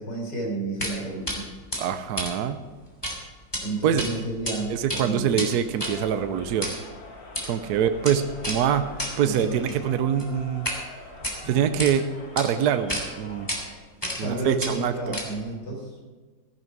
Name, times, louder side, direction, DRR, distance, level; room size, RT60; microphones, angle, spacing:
voice 1, 0.0-1.5 3.6-5.4 9.2-9.6 11.3-11.6 14.2-15.9, right 2 dB, 65° left, -1 dB, 4.8 m, -31 dB
sound 1, 0.8-1.0 1.3-1.4 1.7-3.2 3.4-3.6 4.0-4.5 4.8-10.8 11.1-11.9 12.4-12.5 12.9-13.0 13.5-13.6 14.0-14.3 14.6-15.5, equal, 15° left, 2.9 m, -32 dB
voice 2, 1.8-2.6 3.8-4.1 4.7-6.7 7.4-8.9 9.2-10.7 11.4-12.0 12.4-13.5 14.2-15.2, right 8 dB, 65° right, 9 dB, 1.2 m, -24 dB
Crowd, 5.7-13.8, left 2 dB, 85° left, 2.7 m, -45 dB
15.0 x 11.0 x 4.7 m, 1.4 s
omnidirectional pair, 2.0 m